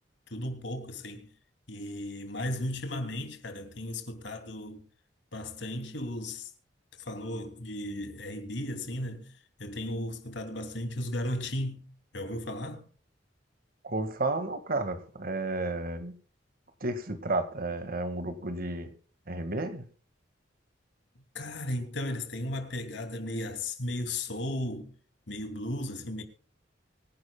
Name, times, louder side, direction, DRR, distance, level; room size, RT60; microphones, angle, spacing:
voice 1, 0.3-1.3 1.7-4.8 5.3-6.5 7.0-9.3 9.6-12.9 21.3-24.9 25.3-26.2, left 1 dB, 70° left, 3.0 m, -35 dB
voice 2, 13.8-16.1 16.8-18.9 19.3-19.8, right 2 dB, 50° right, 2.0 m, -32 dB
24.5 x 11.0 x 2.3 m
head